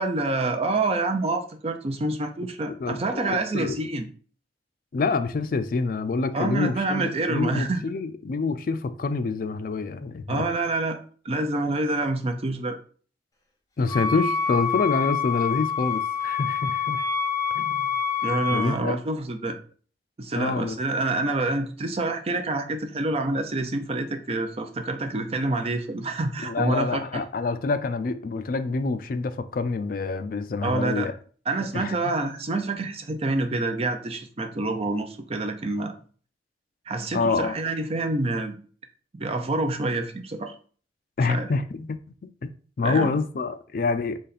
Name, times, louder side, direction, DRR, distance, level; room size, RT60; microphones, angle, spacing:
voice 1, 0.0-4.1 6.3-7.8 10.3-11.0 11.2-12.8 18.2-19.6 20.2-27.2 30.6-31.1 31.5-35.9 36.9-38.6 39.1-40.5 41.3-41.5 42.8-43.1, right 2 dB, 35° right, 0.5 m, -27 dB
voice 2, 3.3-3.8 4.9-10.5 13.8-17.1 17.5-17.9 18.5-19.0 20.3-20.8 26.4-31.1 31.7-31.9 37.1-37.6 41.2-42.0 42.8-44.2, left 4 dB, 50° left, 0.4 m, -27 dB
Wind instrument woodwind instrument, 13.9-18.8, left 6 dB, 20° left, 0.8 m, -27 dB
4.0 x 3.2 x 4.1 m
head